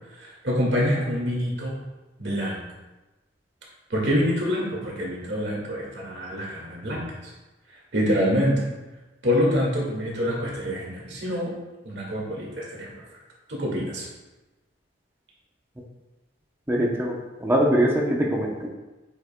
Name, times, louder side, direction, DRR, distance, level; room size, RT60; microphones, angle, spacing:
voice 1, 0.1-1.8 2.2-2.6 3.9-7.3 7.9-8.6 9.2-11.5 11.8-12.9 13.5-14.1, equal, 65° right, -4 dB, 1.9 m, -26 dB
voice 2, 16.7-18.7, right 1 dB, 15° right, -1 dB, 0.7 m, -23 dB
8.0 x 5.3 x 2.2 m, 1.1 s
head